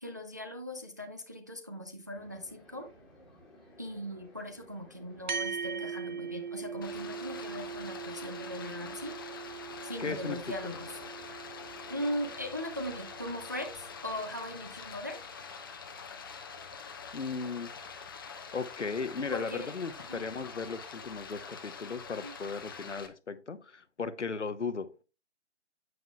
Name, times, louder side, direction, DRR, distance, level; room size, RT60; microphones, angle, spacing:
voice 1, 0.0-2.9 3.8-9.2 9.8-11.0 11.9-15.2 19.3-19.7 20.1-20.2 22.2-22.3, equal, 15° right, 0.4 m, -39 dB
sound 1, 2.1-12.0, left 1 dB, ahead, 1.8 m, -57 dB
sound 2, 5.3-14.0, right 6 dB, 40° right, 1.1 m, -41 dB
Stream, 6.8-23.1, left 5 dB, 20° left, 0.7 m, -45 dB
voice 2, 10.0-10.4 17.1-17.7 18.5-24.9, left 4 dB, 75° left, 1.1 m, -36 dB
9.5 x 7.9 x 2.3 m
figure-of-eight pair, 150°, 35 cm